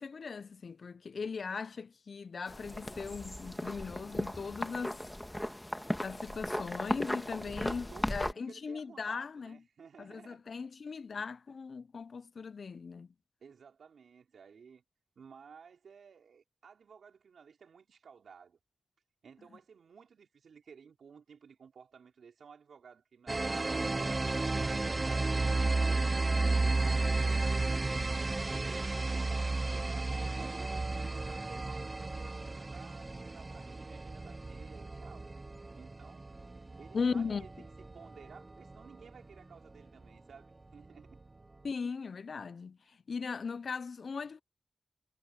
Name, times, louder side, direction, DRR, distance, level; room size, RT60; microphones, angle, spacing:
voice 1, 0.0-5.0 6.0-9.6 10.0-13.1 36.9-37.5 41.6-42.8 43.1-44.4, left 5 dB, 70° left, 0.6 m, -38 dB
sound 1, 2.5-8.3, left 1 dB, 10° left, 1.7 m, -37 dB
voice 2, 7.4-10.4 11.1-11.3 13.4-14.8 15.2-18.6 19.2-30.1 30.4-35.3 35.7-36.3 36.8-41.2, right 6 dB, 90° right, 4.5 m, -55 dB
sound 2, 23.3-38.7, right 3 dB, 35° right, 0.8 m, -33 dB
cardioid pair, 50°, 0 cm